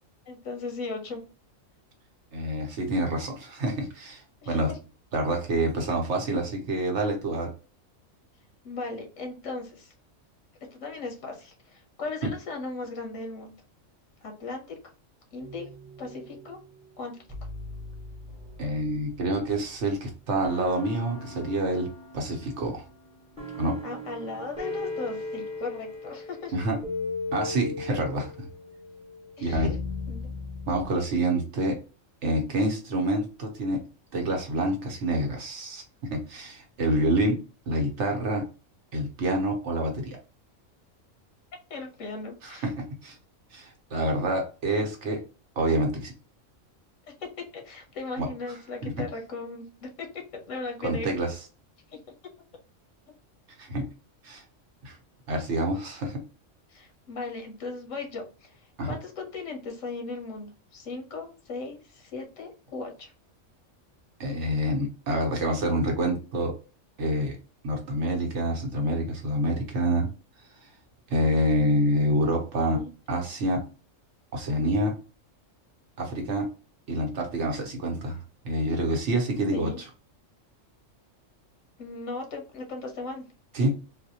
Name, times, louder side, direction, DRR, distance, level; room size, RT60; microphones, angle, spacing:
voice 1, 0.3-1.2 4.4-4.8 8.6-9.9 10.7-13.5 14.2-14.8 15.3-15.7 16.0-16.6 17.0-17.2 23.8-26.5 29.4-29.8 30.1-30.3 41.7-42.7 47.2-51.1 51.9-52.0 56.7-63.1 72.6-72.9 79.5-79.8 81.8-83.3, left 3 dB, 80° left, 3 dB, 1.3 m, -37 dB
voice 2, 2.3-4.7 5.1-7.5 18.6-22.8 23.6-23.8 26.5-26.8 27.3-28.5 29.4-29.7 30.7-31.8 32.2-33.8 34.1-35.8 36.1-37.4 37.7-38.4 38.9-40.2 42.4-43.2 43.5-45.2 45.6-46.1 48.2-48.3 48.8-48.9 50.8-51.3 53.6-53.8 54.2-54.4 54.8-55.0 55.3-56.2 58.8-58.9 64.2-66.5 67.0-67.4 67.6-70.1 71.1-72.8 73.1-73.6 74.3-74.9 76.0-76.5 76.9-79.9 83.5-83.7, right 1 dB, 65° right, 2 dB, 1.2 m, -27 dB
sound 1, 15.4-16.6 17.3-19.9 20.4-30.9, left 3 dB, 5° right, 1.0 m, -38 dB
3.9 x 2.2 x 2.8 m, 0.34 s
omnidirectional pair, 1.3 m